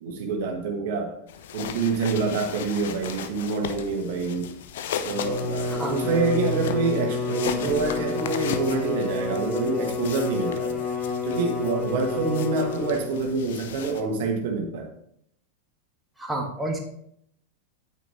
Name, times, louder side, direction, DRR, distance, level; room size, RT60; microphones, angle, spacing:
voice 1, 0.0-1.2 1.5-4.5 5.0-10.8 11.2-14.9, right 4 dB, 50° right, 2 dB, 1.7 m, -27 dB
sound 1, 1.3-14.0, left 8 dB, 55° left, 0.7 m, -37 dB
Bowed string instrument, 5.0-13.3, left 4 dB, 15° left, 1.6 m, -29 dB
voice 2, 16.2-16.8, right 1 dB, 5° right, -1 dB, 1.7 m, -29 dB
9.2 x 8.7 x 3.3 m, 0.69 s
figure-of-eight pair, 90°, 0 cm